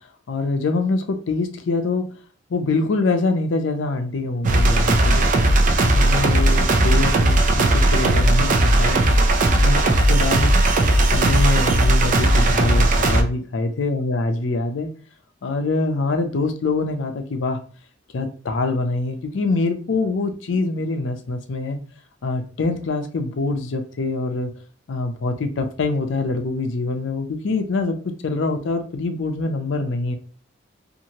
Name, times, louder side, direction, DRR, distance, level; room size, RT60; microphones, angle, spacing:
voice 1, 0.3-2.1 2.5-5.3 5.8-9.0 9.6-10.5 11.1-14.9 15.4-17.6 18.1-21.8 22.2-24.5 24.9-30.2, left 3 dB, 75° left, 6 dB, 0.5 m, -24 dB
sound 1, 4.4-13.2, right 1 dB, 45° right, 0.4 m, -17 dB
2.7 x 2.5 x 2.9 m, 0.41 s
head